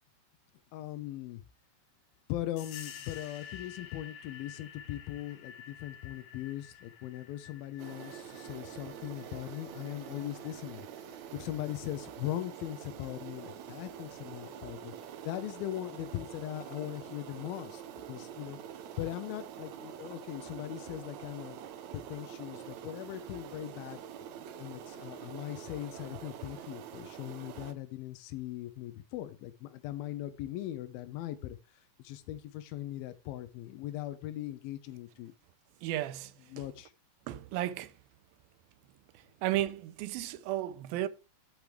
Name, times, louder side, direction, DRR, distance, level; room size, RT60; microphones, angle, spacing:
voice 1, 0.7-1.4 2.3-17.8 18.1-18.6 19.0-21.6 21.9-24.0 24.6-35.3 36.5-36.9, left 14 dB, 85° left, 2.5 m, -40 dB
sound 1, 2.6-10.9, left 8 dB, 65° left, 1.8 m, -50 dB
sound 2, 7.8-27.7, right 9 dB, 70° right, 1.8 m, -46 dB
voice 2, 35.8-36.3 37.3-37.9 39.1-41.1, right 14 dB, 90° right, 2.5 m, -34 dB
10.5 x 8.0 x 3.4 m
omnidirectional pair, 4.2 m